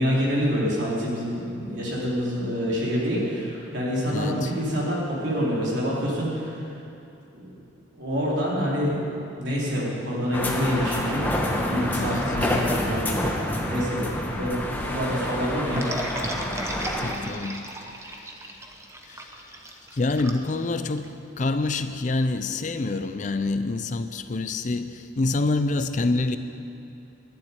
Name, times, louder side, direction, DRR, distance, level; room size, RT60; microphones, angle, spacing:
voice 1, 0.0-6.7 7.3-7.4 8.0-9.1 9.3-11.3 11.6-15.8, equal, 70° right, -5 dB, 3.5 m, -27 dB
voice 2, 4.1-4.5 12.0-12.2 17.0-17.7 18.0-18.3 19.1-19.3 19.9-26.4, left 3 dB, 40° left, 10 dB, 0.4 m, -27 dB
sound 1, 10.3-17.1, left 1 dB, 10° left, 1.0 m, -28 dB
sound 2, 15.8-21.1, right 1 dB, 15° right, 0.7 m, -35 dB
11.5 x 7.3 x 9.8 m, 2.7 s
head